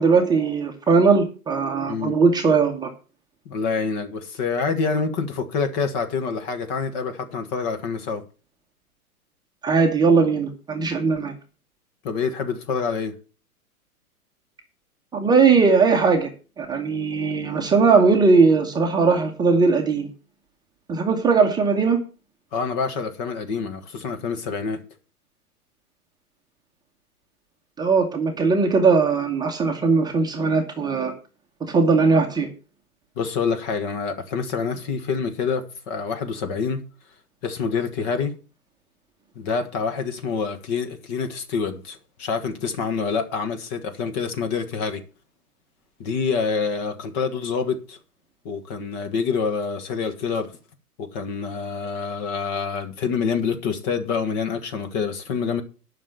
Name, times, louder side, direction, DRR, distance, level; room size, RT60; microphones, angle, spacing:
voice 1, 0.0-2.9 9.6-11.3 15.1-16.3 16.6-20.1 20.9-22.0 27.8-31.1 31.6-32.5, right 4 dB, 10° right, 1.2 m, -19 dB
voice 2, 3.4-8.2 12.0-13.1 22.5-24.8 33.2-36.8 37.4-38.3 39.3-45.0 46.0-48.0 48.4-50.5 51.0-55.6, left 5 dB, 30° left, 1.5 m, -26 dB
11.0 x 6.0 x 6.8 m
figure-of-eight pair, 125°, 45 cm